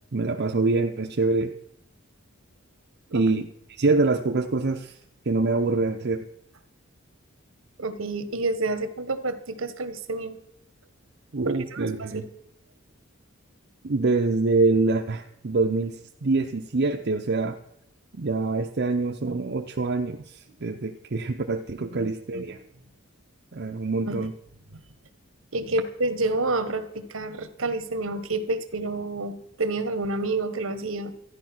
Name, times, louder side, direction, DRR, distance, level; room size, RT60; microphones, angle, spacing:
voice 1, 0.1-1.5 3.1-5.0 5.3-6.3 11.3-12.2 13.8-17.6 18.1-22.6 23.5-24.3, right 3 dB, 55° right, 3 dB, 0.7 m, -25 dB
voice 2, 7.8-10.4 11.4-12.3 21.9-22.6 24.1-24.2 25.5-31.1, right 2 dB, 70° right, 11 dB, 1.2 m, -29 dB
13.5 x 10.0 x 6.0 m, 0.77 s
head